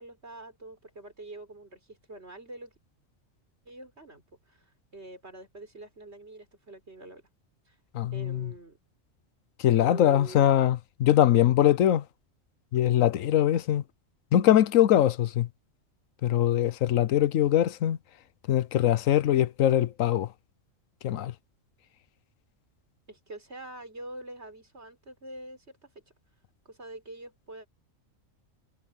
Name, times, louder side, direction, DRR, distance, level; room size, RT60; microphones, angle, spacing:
voice 1, 0.0-2.7 3.7-7.2 7.7-7.8 8.1-8.8 9.8-10.5 23.1-25.9 26.6-27.7, right 2 dB, 55° right, 4.5 m, -45 dB
voice 2, 7.9-8.5 9.6-12.0 12.7-13.8 14.3-15.5 16.2-18.0 18.5-20.3 21.0-21.3, left 11 dB, 80° left, 1.1 m, -22 dB
omnidirectional pair, 1.4 m